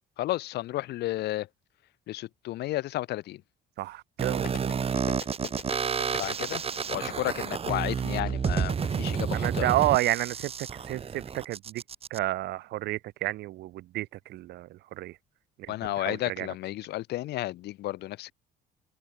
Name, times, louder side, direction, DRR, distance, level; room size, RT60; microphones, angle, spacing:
voice 1, 0.2-1.5 2.1-3.4 6.2-6.6 6.9-9.7 15.7-18.3, left 16 dB, 80° left, 4.3 m, -32 dB
voice 2, 3.8-4.7 9.3-11.8 12.1-15.1 15.6-16.5, right 16 dB, 80° right, 2.5 m, -31 dB
sound 1, 4.2-12.2, right 6 dB, 35° right, 2.7 m, -30 dB
sound 2, 4.4-9.5 9.7-9.8, left 11 dB, 60° left, 2.6 m, -41 dB
open air
cardioid pair, 110°, 17 cm